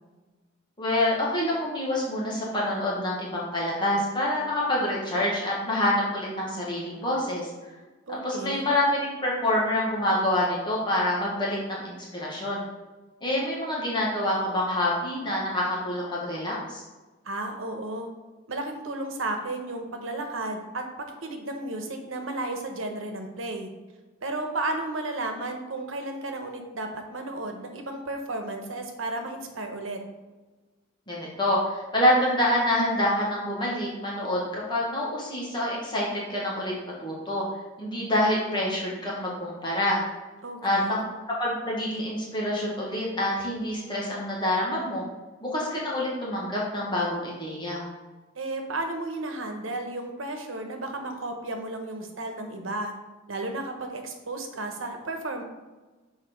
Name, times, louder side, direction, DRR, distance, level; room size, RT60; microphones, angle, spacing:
voice 1, 0.8-7.5 8.2-12.6 13.2-16.8 31.1-36.7 37.0-37.4 37.8-40.0 40.6-41.0 41.3-45.0 45.4-47.8, left 1 dB, 25° left, -5 dB, 1.6 m, -27 dB
voice 2, 8.1-8.7 17.2-18.1 18.5-23.7 24.2-30.0 40.4-41.0 48.3-52.9 53.3-55.4, right 2 dB, 85° right, 4 dB, 1.1 m, -33 dB
6.7 x 4.2 x 5.2 m, 1.2 s
head